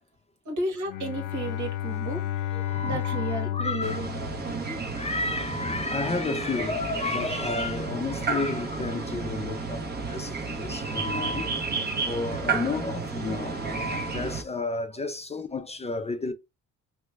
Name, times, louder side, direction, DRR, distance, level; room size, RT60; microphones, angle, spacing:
voice 1, 0.4-2.2 2.8-4.1 4.4-4.9, right 2 dB, 70° right, 1.5 m, -33 dB
Bowed string instrument, 0.9-5.2, left 13 dB, 90° left, 0.5 m, -32 dB
voice 2, 2.5-4.1 4.9-16.3, left 3 dB, 20° left, 0.4 m, -32 dB
sound 1, 3.8-14.4, right 4 dB, 35° right, 1.0 m, -32 dB
3.0 x 2.2 x 3.4 m
cardioid pair, 90°, 30 cm